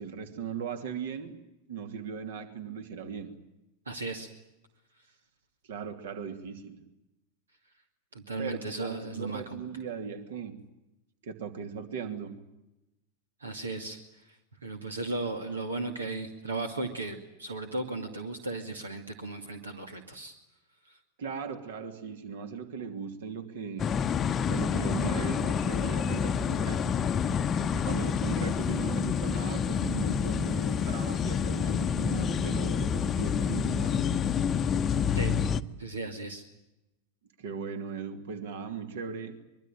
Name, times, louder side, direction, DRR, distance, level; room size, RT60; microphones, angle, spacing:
voice 1, 0.0-1.4 1.7-3.3 5.7-6.8 8.4-10.6 11.2-12.3 21.2-23.9 24.5-27.0 27.6-34.0 37.4-39.4, right 6 dB, 60° right, 7 dB, 2.9 m, -38 dB
voice 2, 3.9-4.3 8.1-9.6 13.4-14.0 14.6-20.3 35.1-35.3 35.8-36.4, right 2 dB, 75° right, 6 dB, 2.3 m, -36 dB
sound 1, 23.8-35.6, left 7 dB, 25° left, 0.9 m, -28 dB
24.5 x 23.0 x 9.2 m, 0.95 s
figure-of-eight pair, 90°, 0 cm